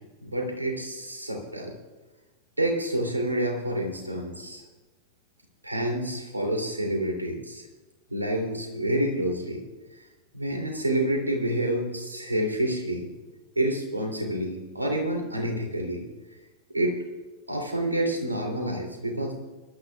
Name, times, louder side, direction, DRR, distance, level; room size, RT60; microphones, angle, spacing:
voice 1, 0.2-1.7 2.6-4.6 5.6-7.7 8.1-9.6 10.0-10.1 10.3-13.1 13.5-16.1 16.7-17.0 17.5-19.3, right 1 dB, 85° right, 1 dB, 3.0 m, -28 dB
22.5 x 12.5 x 2.4 m, 1.2 s
figure-of-eight pair, 90°, 0 cm